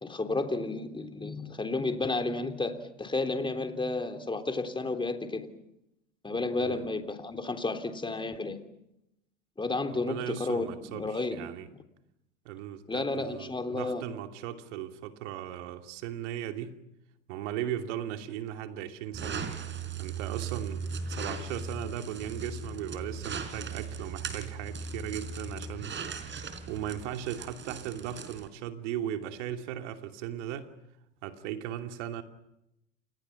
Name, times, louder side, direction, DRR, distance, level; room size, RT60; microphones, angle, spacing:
voice 1, 0.0-5.5 6.2-8.6 9.6-11.4 12.9-14.0, left 3 dB, 15° left, 3.6 m, -32 dB
voice 2, 9.9-11.7 12.4-16.8 17.3-19.5 20.0-26.0 26.7-30.7 31.2-32.2, right 11 dB, 65° right, 2.8 m, -37 dB
sound 1, 19.1-28.5, right 4 dB, 30° right, 4.3 m, -38 dB
30.0 x 28.5 x 6.0 m
hypercardioid pair, 85°, 37 cm